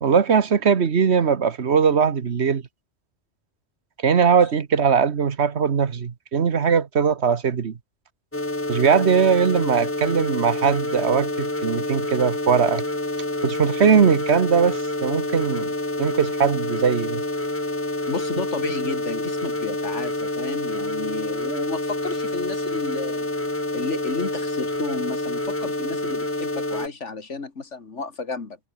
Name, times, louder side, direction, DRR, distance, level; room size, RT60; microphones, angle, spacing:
voice 1, 0.0-2.6 4.0-7.7 8.7-12.8 13.4-15.7 16.0-17.2, right 6 dB, 70° right, 1.5 m, -20 dB
sound 1, 8.3-26.9, left 1 dB, 10° left, 1.2 m, -27 dB
voice 2, 18.1-23.3 23.7-28.6, left 4 dB, 85° left, 2.7 m, -32 dB
omnidirectional pair, 1.2 m